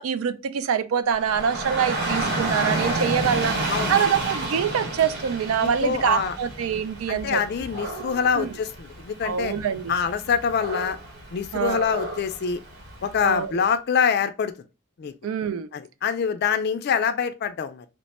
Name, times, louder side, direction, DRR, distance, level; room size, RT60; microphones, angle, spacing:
voice 1, 0.0-7.4 8.4-8.5 9.2-9.9 11.5-11.9 13.2-13.6 15.2-15.7, right 7 dB, 80° right, 0.4 m, -25 dB
Dog / Rain, 1.1-13.3, right 2 dB, 55° right, 1.0 m, -31 dB
voice 2, 5.6-6.4 7.1-9.5 9.9-11.0 11.3-12.6 13.0-14.5 15.0-15.1 15.7-17.8, left 6 dB, 50° left, 0.3 m, -25 dB
3.0 x 2.2 x 4.0 m
head